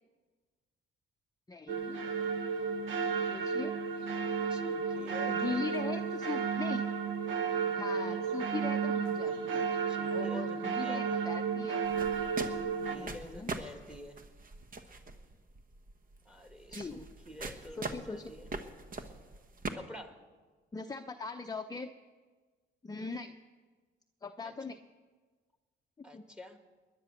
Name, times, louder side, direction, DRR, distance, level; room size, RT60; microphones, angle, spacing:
voice 1, 1.5-2.1 3.3-3.7 5.3-6.8 7.8-9.7 10.1-11.8 12.9-13.7 16.7-17.0 17.8-18.3 20.7-21.9 22.8-23.3 24.2-24.8 26.1-26.2, left 4 dB, 20° left, 6 dB, 0.6 m, -40 dB
sound 1, 1.7-13.0, right 6 dB, 80° right, 1.2 m, -33 dB
voice 2, 4.5-5.8 9.9-11.0 12.8-14.2 16.3-18.4 19.7-20.2 24.4-24.5 26.0-26.6, left 1 dB, 5° right, 5 dB, 1.9 m, -48 dB
sound 2, 11.8-19.7, right 3 dB, 45° right, 1.3 m, -43 dB
20.5 x 10.5 x 6.5 m, 1.4 s
cardioid pair, 90°, 20 cm